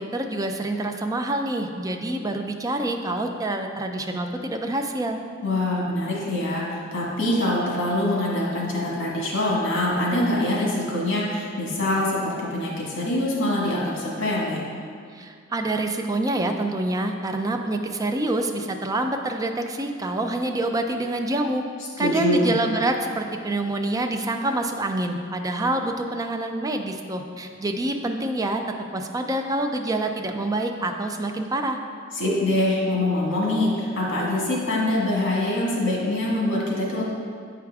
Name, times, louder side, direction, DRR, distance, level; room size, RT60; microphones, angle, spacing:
voice 1, 0.0-5.2 15.1-21.6 22.0-28.6 28.9-31.8, right 1 dB, 20° right, 4 dB, 0.4 m, -26 dB
voice 2, 5.4-14.6 22.0-22.6 32.1-37.0, left 1 dB, 65° left, -4 dB, 1.7 m, -24 dB
8.4 x 4.8 x 3.5 m, 2.1 s
head